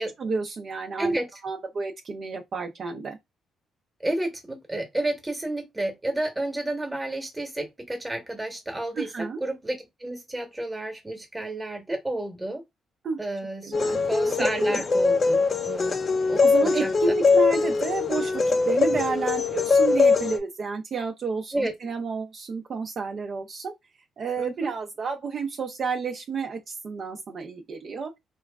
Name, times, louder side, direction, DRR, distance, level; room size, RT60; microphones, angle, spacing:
voice 1, 0.0-1.1 1.4-3.2 9.0-9.4 13.0-13.2 13.6-14.0 14.6-14.8 16.4-23.7 24.2-28.1, right 4 dB, 50° right, 0.5 m, -31 dB
voice 2, 4.0-12.6 13.2-13.7 14.0-16.0 16.3-16.9 21.5-21.7 24.4-24.7, right 1 dB, 15° right, 1.0 m, -31 dB
sound 1, 13.7-20.4, left 4 dB, 40° left, 0.4 m, -22 dB
2.9 x 2.3 x 2.2 m
cardioid pair, 90°, 0 cm